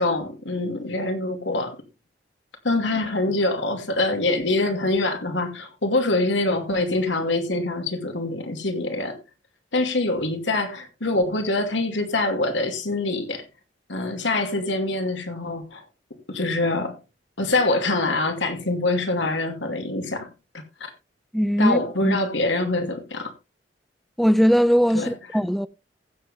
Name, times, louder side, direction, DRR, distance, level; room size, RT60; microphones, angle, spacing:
voice 1, 0.0-1.8 2.6-9.2 9.7-13.4 13.9-15.8 16.3-17.0 17.4-20.3 20.8-20.9 21.6-23.3 24.9-25.1, left 2 dB, 80° left, 2.5 m, -24 dB
voice 2, 21.3-22.2 24.2-25.7, equal, ahead, 0.4 m, -20 dB
15.5 x 7.6 x 3.3 m
head